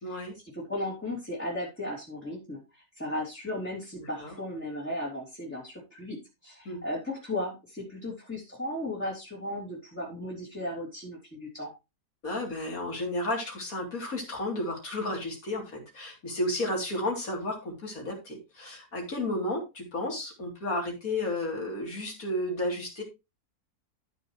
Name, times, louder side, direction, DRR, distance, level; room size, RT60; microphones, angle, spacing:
voice 1, 0.0-0.3 3.9-4.3 6.7-6.8 12.2-23.0, left 1 dB, 65° left, 0 dB, 3.8 m, -32 dB
voice 2, 0.5-6.2 6.4-11.7, left 1 dB, 10° left, -5 dB, 3.1 m, -36 dB
13.5 x 6.3 x 3.2 m, 0.25 s
omnidirectional pair, 1.6 m